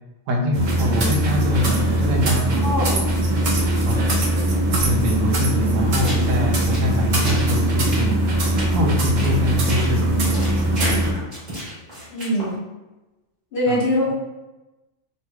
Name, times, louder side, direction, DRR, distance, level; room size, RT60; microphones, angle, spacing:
voice 1, 0.3-2.8 3.9-4.1 4.7-8.2 8.7-11.3 13.7-13.8, equal, 80° right, 1 dB, 0.9 m, -24 dB
sound 1, 0.5-11.1, right 1 dB, 60° right, 0.5 m, -21 dB
voice 2, 2.6-3.1 12.1-12.6 13.5-14.1, left 1 dB, 55° left, -4 dB, 1.0 m, -22 dB
sound 2, 6.0-6.3 6.6-7.5 7.8-8.0 8.4-8.6 9.1-9.4 9.7-10.0 10.3-12.5, equal, 35° right, 1.5 m, -31 dB
3.1 x 2.6 x 2.2 m, 1.0 s
omnidirectional pair, 1.3 m